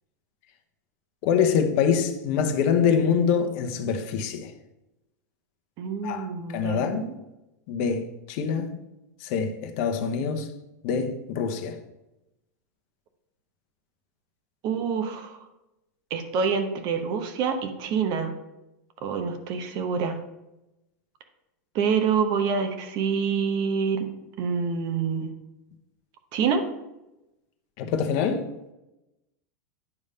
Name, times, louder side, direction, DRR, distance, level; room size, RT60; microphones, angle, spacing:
voice 1, 1.2-4.5 6.0-6.3 6.5-7.1 7.7-8.7 9.2-10.5 10.8-11.8 27.8-28.5, left 6 dB, 55° left, 1.0 m, -25 dB
voice 2, 5.8-7.1 14.6-15.4 16.1-18.3 19.0-20.2 21.7-24.1 24.4-25.3 26.3-26.6, right 6 dB, 50° right, 1.0 m, -26 dB
9.6 x 3.4 x 5.4 m
hypercardioid pair, 120°, 10 cm